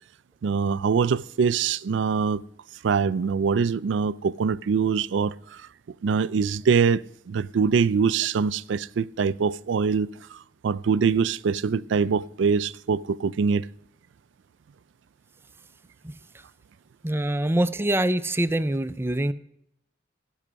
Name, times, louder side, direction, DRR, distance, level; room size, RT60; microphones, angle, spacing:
voice 1, 0.4-2.4 2.8-5.6 6.0-13.7, right 5 dB, 80° right, 0.4 m, -24 dB
voice 2, 17.0-19.3, right 1 dB, 15° right, 0.4 m, -24 dB
16.0 x 5.7 x 6.2 m
head